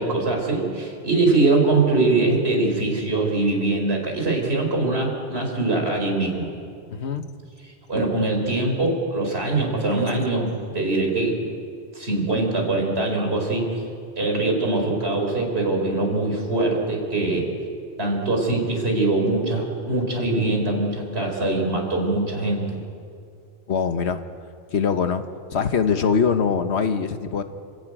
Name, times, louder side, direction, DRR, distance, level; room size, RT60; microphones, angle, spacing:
voice 1, 0.0-6.5 7.9-11.4 11.9-13.8 14.2-17.5 18.0-22.8, right 2 dB, 65° right, 1 dB, 4.5 m, -22 dB
voice 2, 6.9-7.3 9.9-10.0 23.7-24.2 24.7-25.2 25.5-27.4, left 6 dB, 75° left, 9 dB, 1.4 m, -22 dB
28.0 x 14.0 x 9.1 m, 2.4 s
omnidirectional pair, 1.1 m